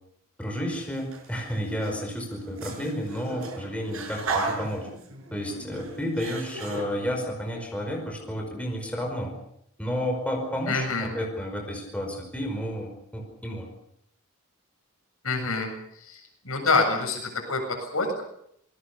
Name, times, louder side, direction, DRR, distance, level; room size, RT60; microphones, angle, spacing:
voice 1, 0.4-4.9 5.3-9.3 9.8-13.7, equal, 5° left, 1 dB, 5.2 m, -31 dB
sound 1, 0.7-1.3 1.7-6.8, right 3 dB, 70° right, 6.3 m, -35 dB
voice 2, 10.7-11.1 15.2-15.7 16.0-18.2, left 3 dB, 70° left, 3 dB, 7.7 m, -26 dB
27.5 x 20.5 x 6.9 m, 0.74 s
head